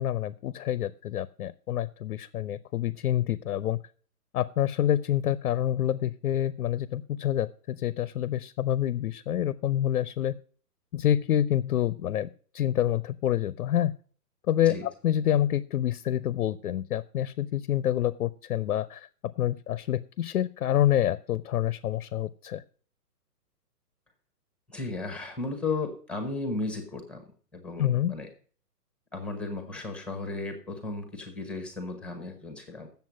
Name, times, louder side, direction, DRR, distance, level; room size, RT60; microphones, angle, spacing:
voice 1, 0.0-3.8 4.3-10.3 10.9-12.3 12.5-13.9 14.5-19.1 19.4-22.6 27.8-28.1, left 11 dB, 60° left, 17 dB, 0.6 m, -27 dB
voice 2, 24.7-27.2 27.5-28.3 29.1-32.9, left 3 dB, ahead, 6 dB, 1.0 m, -35 dB
7.7 x 7.2 x 7.3 m, 0.43 s
hypercardioid pair, 145°, 48 cm